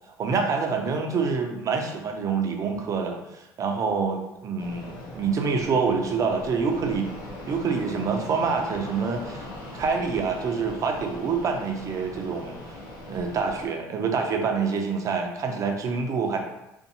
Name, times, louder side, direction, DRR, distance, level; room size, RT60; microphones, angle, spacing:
voice 1, 0.2-7.1 7.5-9.5 9.7-12.5 13.1-16.4, right 5 dB, 45° right, 3 dB, 0.5 m, -26 dB
Fixed-wing aircraft airplane, 4.6-13.7, left 1 dB, 60° left, 0.7 m, -40 dB
2.6 x 2.2 x 2.7 m, 0.90 s
supercardioid pair, 75°, 8 cm